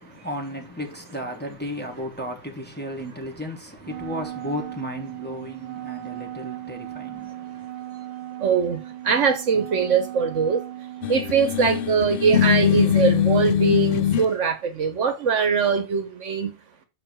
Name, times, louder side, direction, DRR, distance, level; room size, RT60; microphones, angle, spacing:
voice 1, 0.0-7.7, equal, 10° left, 1.3 m, -34 dB
Wind instrument woodwind instrument, 3.8-12.0, right 13 dB, 90° right, 0.4 m, -37 dB
voice 2, 8.4-10.6 11.1-16.5, right 6 dB, 60° right, 1.2 m, -22 dB
sound 1, 11.0-14.3, left 10 dB, 65° left, 0.5 m, -21 dB
5.9 x 4.7 x 6.0 m
omnidirectional pair, 1.4 m